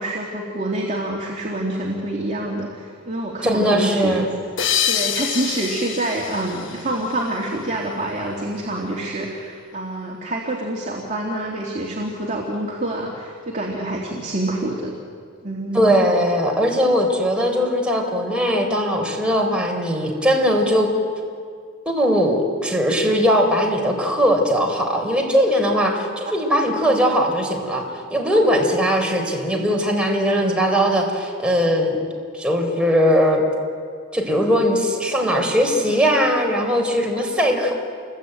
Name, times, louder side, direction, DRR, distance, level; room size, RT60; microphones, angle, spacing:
voice 1, 0.0-4.2 4.9-14.9 15.4-16.0 37.5-37.6, right 1 dB, 35° right, -1 dB, 3.1 m, -26 dB
voice 2, 3.4-4.3 15.7-20.9 21.9-27.8 28.1-32.0 32.3-33.4 34.1-37.8, equal, 5° right, 1 dB, 4.1 m, -19 dB
sound 1, 4.6-7.7, left 9 dB, 60° left, 1.2 m, -26 dB
29.0 x 22.5 x 9.1 m, 2.2 s
head